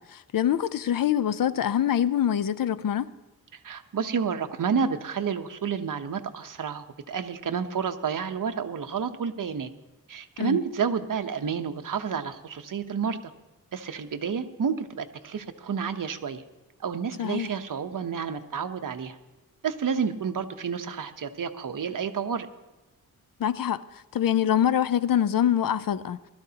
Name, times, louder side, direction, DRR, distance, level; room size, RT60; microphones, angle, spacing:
voice 1, 0.1-3.1 10.4-10.6 17.2-17.5 23.4-26.2, left 10 dB, 65° left, 0.6 m, -25 dB
voice 2, 3.6-9.7 10.1-13.2 13.7-16.4 16.8-19.2 19.6-22.5, right 6 dB, 60° right, 0.9 m, -30 dB
20.5 x 13.0 x 2.9 m
wide cardioid pair, 85°, 37 cm